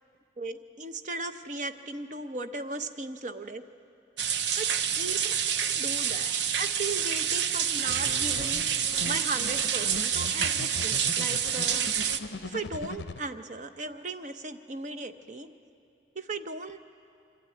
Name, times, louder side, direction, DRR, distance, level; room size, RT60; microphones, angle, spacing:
voice 1, 0.4-3.6 4.6-4.7 5.0-5.3 5.7-6.3 6.6-8.7 9.0-11.9 12.4-15.5 16.1-16.8, right 3 dB, 40° right, 9 dB, 0.7 m, -37 dB
sound 1, 4.2-12.2, right 8 dB, 75° right, 0.7 m, -28 dB
sound 2, 7.9-13.2, left 3 dB, 70° left, 0.6 m, -39 dB
24.5 x 12.5 x 9.2 m, 2.5 s
head